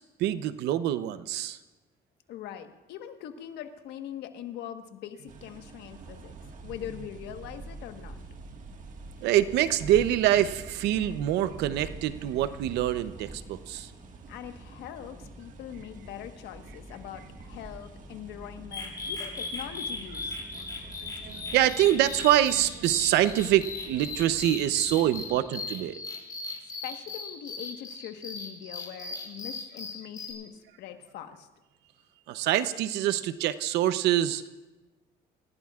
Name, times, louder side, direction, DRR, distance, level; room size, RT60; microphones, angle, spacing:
voice 1, 0.2-1.6 9.2-13.9 20.8-26.0 32.3-34.5, right 12 dB, 85° right, 13 dB, 0.7 m, -25 dB
voice 2, 2.3-6.3 6.6-8.2 14.3-20.4 26.8-31.5, left 10 dB, 80° left, 6 dB, 1.4 m, -42 dB
sound 1, 5.3-24.5, right 3 dB, 50° right, 1.7 m, -47 dB
sound 2, 9.6-25.5, equal, 10° right, 4.9 m, -51 dB
sound 3, 18.7-30.3, left 3 dB, 25° left, 4.9 m, -38 dB
27.5 x 16.0 x 2.4 m, 1.1 s
cardioid pair, 110°, 17 cm